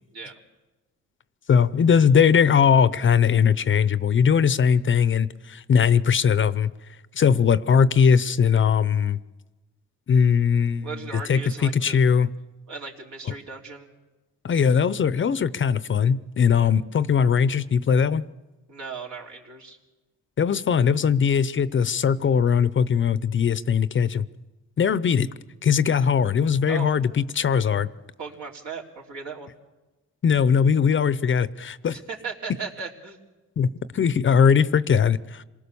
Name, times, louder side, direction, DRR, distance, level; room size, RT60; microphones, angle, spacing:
voice 1, 1.5-6.7 7.2-9.2 10.1-10.9 11.3-12.3 14.4-18.2 20.4-24.3 24.8-25.3 25.6-27.9 30.2-32.0 33.6-33.7 33.9-35.4, left 7 dB, 40° left, 16 dB, 0.7 m, -20 dB
voice 2, 10.8-12.0 12.7-13.9 16.5-16.7 18.7-19.8 26.7-26.9 28.2-29.5 32.1-33.2, right 5 dB, 70° right, -1 dB, 3.8 m, -37 dB
27.0 x 19.0 x 7.0 m, 1.1 s
cardioid pair, 90°, 30 cm